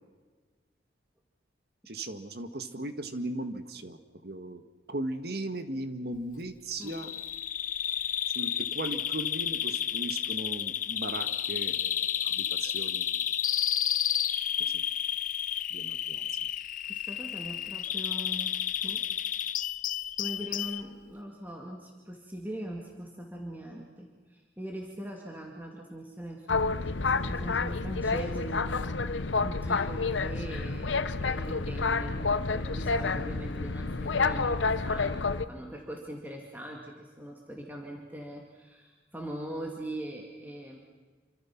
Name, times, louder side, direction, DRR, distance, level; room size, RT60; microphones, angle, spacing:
voice 1, 1.9-4.6 4.9-7.1 8.4-13.2 14.6-14.8 15.7-16.3, right 1 dB, 55° right, 9 dB, 1.8 m, -37 dB
Bird vocalization bird call bird song, 6.8-20.8, left 10 dB, 45° left, 0.7 m, -31 dB
voice 2, 16.9-18.5 18.8-19.1 20.2-40.8, right 1 dB, 10° right, 0 dB, 2.3 m, -41 dB
Boat Water vehicle, 26.5-35.4, left 4 dB, 90° left, 1.0 m, -29 dB
27.5 x 25.5 x 6.0 m, 1.4 s
head